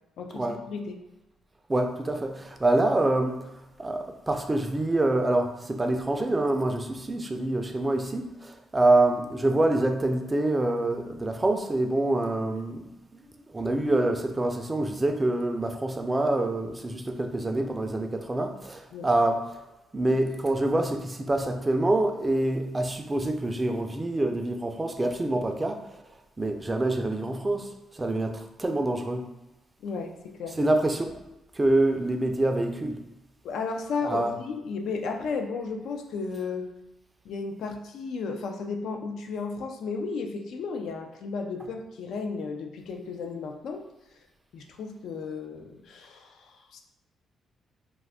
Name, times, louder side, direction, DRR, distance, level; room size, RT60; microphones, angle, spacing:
voice 1, 0.2-1.0 18.9-19.1 29.8-30.6 33.4-36.7 37.2-43.8 44.5-46.8, left 4 dB, 75° left, 4 dB, 0.3 m, -34 dB
voice 2, 1.7-3.5 3.8-13.2 13.5-19.4 19.9-26.0 26.4-29.3 30.6-31.2 31.6-33.0 34.0-34.3, right 2 dB, 20° right, 4 dB, 0.4 m, -26 dB
2.5 x 2.4 x 3.4 m, 0.97 s
cardioid pair, 90°, 0 cm